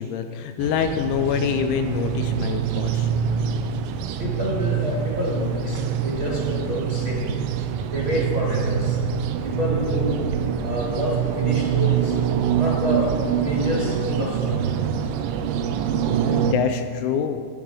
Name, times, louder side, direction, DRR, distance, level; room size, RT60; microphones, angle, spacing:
voice 1, 0.0-3.1 16.3-17.4, left 8 dB, 80° left, 6 dB, 2.9 m, -25 dB
sound 1, 0.6-16.5, right 8 dB, 85° right, 3.2 m, -25 dB
voice 2, 4.2-7.3 7.9-9.0 9.4-10.2 10.6-12.2 12.5-13.1 13.4-14.7, equal, 30° right, -4 dB, 2.6 m, -27 dB
11.5 x 10.5 x 4.8 m, 2.5 s
omnidirectional pair, 5.6 m